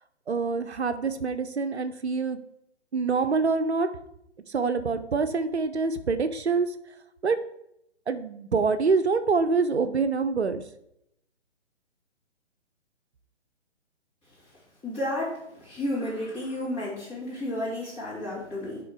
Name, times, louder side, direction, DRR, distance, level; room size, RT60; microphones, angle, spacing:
voice 1, 0.3-2.4 2.9-3.9 4.5-6.7 7.2-7.4 8.1-10.6, right 4 dB, 65° right, 10 dB, 0.8 m, -25 dB
voice 2, 14.8-15.4 15.6-18.8, left 1 dB, 15° left, -7 dB, 3.1 m, -32 dB
10.5 x 3.8 x 4.7 m, 0.79 s
figure-of-eight pair, 135°, 35 cm